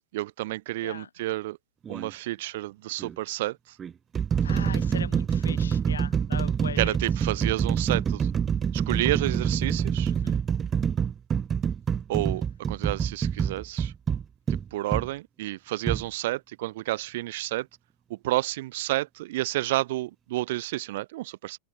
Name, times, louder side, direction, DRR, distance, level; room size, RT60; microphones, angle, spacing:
voice 1, 0.1-1.6 1.9-3.8 6.8-8.3 8.7-10.1 12.1-13.9 14.5-17.7 18.1-21.6, right 17 dB, 55° right, 7.3 m, -30 dB
sound 1, 1.9-2.1 3.0-3.1 3.8-15.1 15.9-16.0, right 7 dB, 20° right, 0.9 m, -26 dB
voice 2, 4.4-7.0 10.1-10.4, left 7 dB, 70° left, 2.5 m, -39 dB
figure-of-eight pair, 90°, 0 cm